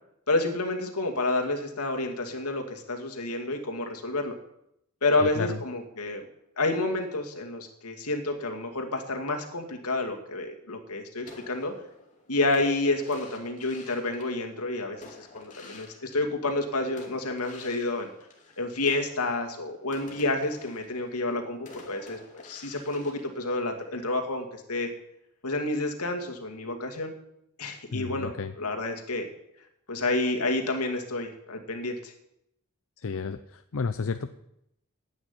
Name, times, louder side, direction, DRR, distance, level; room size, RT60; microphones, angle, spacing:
voice 1, 0.3-4.3 5.0-6.3 6.6-11.7 12.3-18.1 18.6-24.9 25.4-27.1 27.6-28.3 28.6-29.3 29.9-32.1, left 2 dB, 85° left, 3 dB, 2.3 m, -29 dB
voice 2, 5.2-5.6 27.9-28.5 33.0-34.3, left 4 dB, 65° left, 9 dB, 0.6 m, -32 dB
sound 1, 11.2-16.6 17.0-24.1, left 3 dB, 35° left, 2.6 m, -50 dB
11.0 x 8.8 x 9.8 m, 0.80 s
head